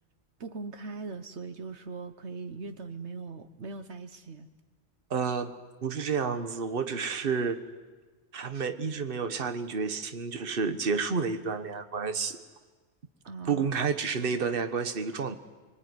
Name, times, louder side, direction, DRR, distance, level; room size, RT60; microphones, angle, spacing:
voice 1, 0.4-4.5 13.2-13.7, right 4 dB, 75° right, 9 dB, 1.4 m, -40 dB
voice 2, 5.1-7.6 8.3-12.4 13.4-15.4, right 5 dB, 55° right, 9 dB, 1.5 m, -30 dB
25.0 x 23.5 x 9.6 m, 1.3 s
omnidirectional pair, 1.2 m